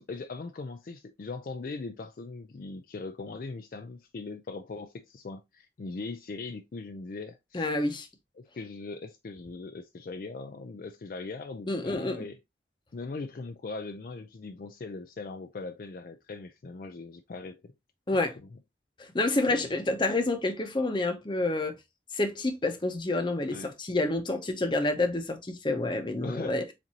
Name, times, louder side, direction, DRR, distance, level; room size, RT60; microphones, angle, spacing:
voice 1, 0.0-7.7 8.4-12.4 12.9-17.7 19.5-19.7 23.5-23.7 26.2-26.6, left 3 dB, 50° left, 0.4 m, -40 dB
voice 2, 7.5-8.1 11.7-12.3 18.1-18.4 19.0-21.8 22.1-26.6, left 2 dB, 25° left, 0.7 m, -28 dB
7.3 x 2.6 x 2.8 m
head